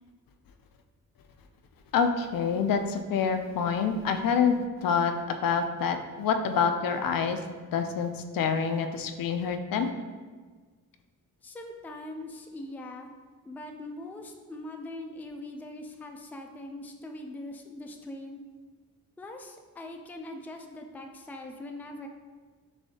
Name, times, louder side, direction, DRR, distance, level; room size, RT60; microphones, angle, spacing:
voice 1, 1.9-4.6 4.8-7.4 7.7-9.9, left 6 dB, 75° left, 7 dB, 0.5 m, -27 dB
voice 2, 11.4-13.1 13.5-18.4 19.2-22.1, left 1 dB, 5° left, 3 dB, 0.3 m, -41 dB
6.2 x 2.7 x 2.8 m, 1.4 s
cardioid pair, 100°, 34 cm